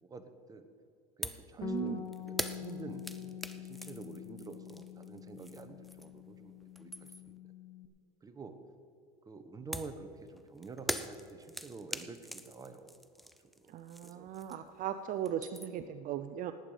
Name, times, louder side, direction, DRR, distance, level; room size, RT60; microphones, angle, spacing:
voice 1, 0.0-0.7 1.2-7.4 8.2-8.6 9.3-13.3 13.6-13.8 14.0-14.3, right 3 dB, 20° right, 8 dB, 1.1 m, -49 dB
sound 1, 1.2-1.5 1.8-6.3 6.6-7.4 9.7-14.8 15.1-15.9, equal, ahead, 0.6 m, -42 dB
Bass guitar, 1.6-7.9, left 7 dB, 20° left, 1.1 m, -45 dB
voice 2, 1.6-2.0 13.7-16.5, right 10 dB, 45° right, 10 dB, 0.6 m, -38 dB
18.5 x 9.0 x 5.1 m, 2.6 s
supercardioid pair, 115°, 20 cm